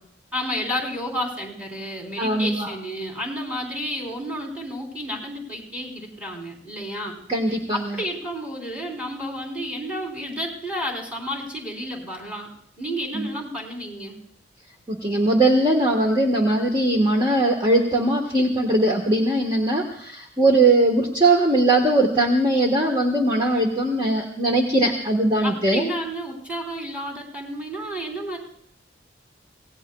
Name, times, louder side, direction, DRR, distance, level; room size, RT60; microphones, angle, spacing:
voice 1, 0.3-7.2 7.5-12.5 12.8-14.2 25.4-28.4, equal, 5° right, -2 dB, 3.6 m, -31 dB
voice 2, 2.2-2.7 7.3-8.0 13.1-13.3 14.9-25.8, right 2 dB, 25° right, 1 dB, 1.3 m, -20 dB
25.5 x 17.5 x 2.3 m, 0.66 s
head